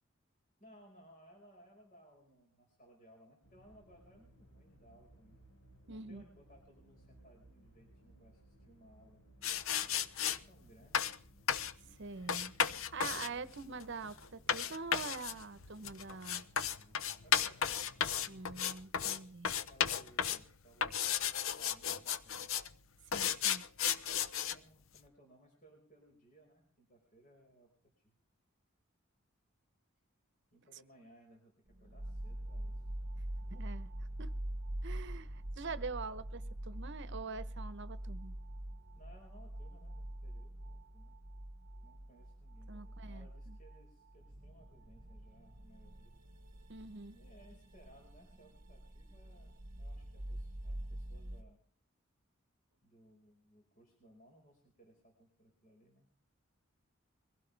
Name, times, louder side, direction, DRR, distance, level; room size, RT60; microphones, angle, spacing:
voice 1, 0.6-5.4 5.9-9.2 9.8-11.1 17.2-17.9 19.4-22.6 24.4-27.7 28.0-28.1 30.5-31.5 31.8-32.8 38.9-41.2 41.8-46.1 47.1-51.6 52.8-56.1, right 1 dB, 40° left, 5.1 m, -63 dB
sound 1, 3.4-18.8, equal, 60° left, 5.3 m, -62 dB
voice 2, 5.9-6.2 11.8-12.5 12.9-16.4 18.3-19.5 23.1-23.6 33.5-33.9 34.2-34.3 34.8-38.3 42.7-43.6 46.7-47.2, right 4 dB, 60° right, 1.0 m, -45 dB
sound 2, 9.4-10.4 10.9-11.2 11.5-11.7 12.3-19.2 19.4-20.4 20.8-22.7 23.1-24.6, left 8 dB, 75° left, 0.8 m, -34 dB
sound 3, 31.7-51.4, right 1 dB, 45° right, 1.4 m, -45 dB
23.0 x 16.5 x 3.4 m
head